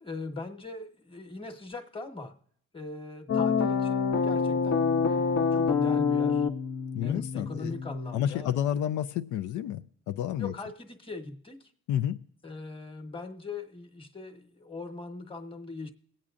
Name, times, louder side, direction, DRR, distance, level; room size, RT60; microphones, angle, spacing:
voice 1, 0.0-2.3 2.7-6.5 7.0-8.8 10.4-11.7 12.4-15.9, left 3 dB, 20° left, 1.2 m, -41 dB
sound 1, 3.3-8.3, left 5 dB, 55° left, 0.9 m, -27 dB
voice 2, 6.9-7.7 8.1-10.5 11.9-12.2, left 10 dB, 85° left, 0.5 m, -30 dB
22.0 x 8.5 x 2.5 m
cardioid pair, 115°, 29 cm